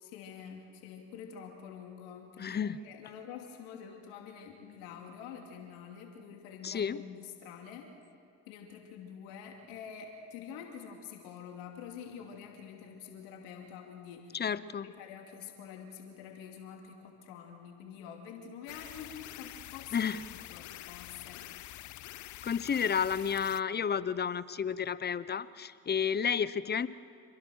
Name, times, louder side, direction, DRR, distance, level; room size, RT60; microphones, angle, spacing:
voice 1, 0.0-7.9 8.5-14.4 14.8-20.1 20.3-21.8, left 7 dB, 80° left, 2 dB, 2.7 m, -47 dB
voice 2, 2.4-2.8 6.6-7.0 14.3-14.9 19.9-20.2 22.4-26.9, left 7 dB, 30° left, 16 dB, 0.8 m, -31 dB
granular scissors, 18.7-23.6, left 16 dB, 55° left, 0.6 m, -46 dB
27.5 x 21.5 x 6.4 m, 2.3 s
supercardioid pair, 75°, 35 cm